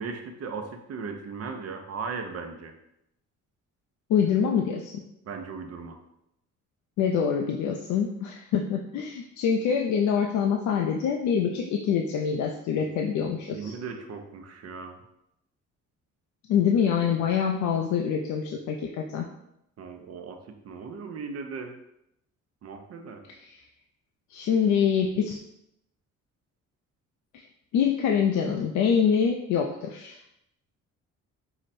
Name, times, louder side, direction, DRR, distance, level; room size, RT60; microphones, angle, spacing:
voice 1, 0.0-2.7 5.3-6.0 12.8-12.9 13.3-15.0 19.8-20.4 20.6-21.7 22.6-23.3, right 5 dB, 55° right, 5 dB, 0.7 m, -37 dB
voice 2, 4.1-5.0 7.0-13.8 16.5-19.3 23.4-23.6 24.3-25.4 27.7-30.2, left 7 dB, 75° left, 1 dB, 0.5 m, -25 dB
4.8 x 2.1 x 4.2 m, 0.80 s
cardioid pair, 90°, 30 cm